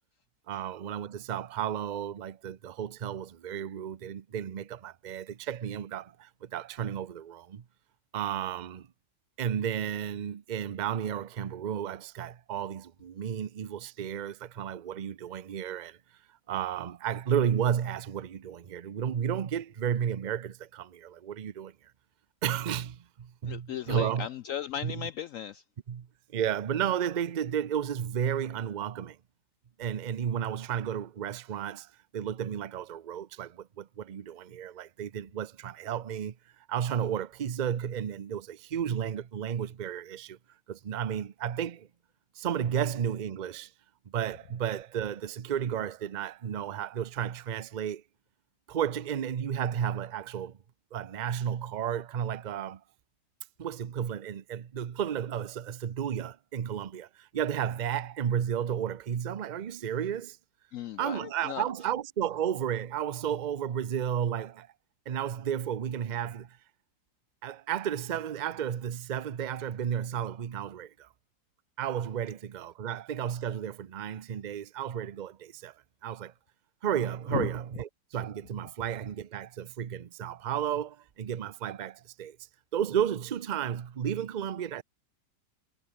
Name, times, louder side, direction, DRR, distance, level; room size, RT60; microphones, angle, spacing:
voice 1, 0.5-7.6 8.1-8.9 9.4-16.0 16.5-21.7 22.4-24.3 24.8-25.1 25.9-26.1 26.3-29.2 29.8-36.3 36.7-40.4 40.7-41.9 42.4-43.7 44.1-48.0 48.7-50.6 50.9-52.8 53.6-60.4 61.0-64.7 65.1-66.6 67.4-71.1 71.8-75.7 76.0-76.3 76.8-82.4 82.7-84.8, right 9 dB, 60° right, 0.4 m, -33 dB
voice 2, 23.5-25.6 60.7-61.6 77.3-77.5, left 10 dB, 70° left, 0.8 m, -36 dB
omnidirectional pair, 1.8 m